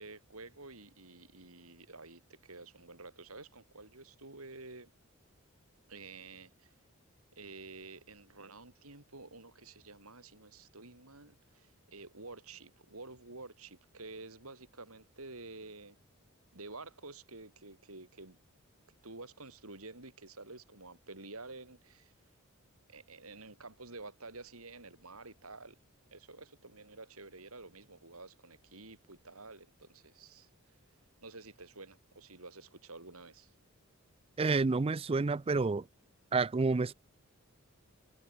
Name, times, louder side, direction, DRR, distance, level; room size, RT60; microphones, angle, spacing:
voice 1, 0.0-4.9 5.9-6.7 7.3-16.0 16.5-18.4 19.0-22.1 22.9-25.8 26.1-30.5 31.2-33.5, right 3 dB, 85° right, 6.8 m, -50 dB
voice 2, 34.4-35.8 36.3-36.9, right 3 dB, 25° right, 0.4 m, -29 dB
head